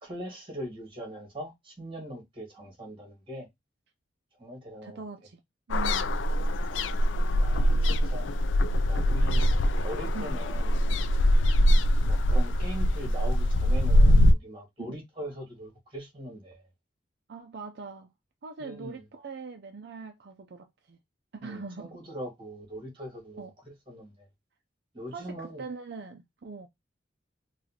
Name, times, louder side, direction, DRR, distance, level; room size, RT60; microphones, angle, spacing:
voice 1, 0.0-3.5 4.4-5.0 7.3-7.7 8.1-8.3 8.9-9.4 9.8-10.8 12.0-16.6 18.6-18.9 21.4-23.5 23.9-24.1 24.9-25.6, equal, 30° right, 1.8 m, -41 dB
voice 2, 4.8-5.4 5.7-6.1 7.6-7.8 10.1-10.3 14.9-15.0 17.3-18.1 18.4-21.0 21.3-22.0 23.4-23.5 25.1-26.7, right 4 dB, 60° right, 0.5 m, -42 dB
sound 1, 5.7-14.3, equal, 85° left, 0.4 m, -23 dB
4.0 x 2.4 x 2.8 m
head